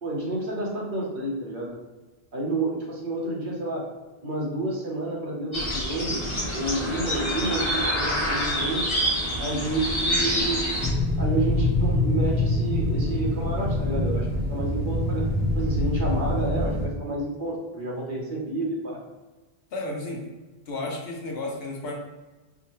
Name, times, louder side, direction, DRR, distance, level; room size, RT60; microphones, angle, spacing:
voice 1, 0.0-1.7 2.3-3.8 4.2-6.2 6.5-8.8 9.4-10.6 11.2-15.2 15.5-19.0, right 2 dB, 55° right, -3 dB, 1.0 m, -30 dB
sound 1, 5.5-10.9, equal, 30° left, 0.8 m, -26 dB
sound 2, 10.8-16.8, left 1 dB, 10° right, 0.8 m, -25 dB
voice 2, 19.7-20.3 20.7-21.9, left 2 dB, 70° left, 0 dB, 1.0 m, -32 dB
4.6 x 2.2 x 3.0 m, 1.2 s
omnidirectional pair, 1.1 m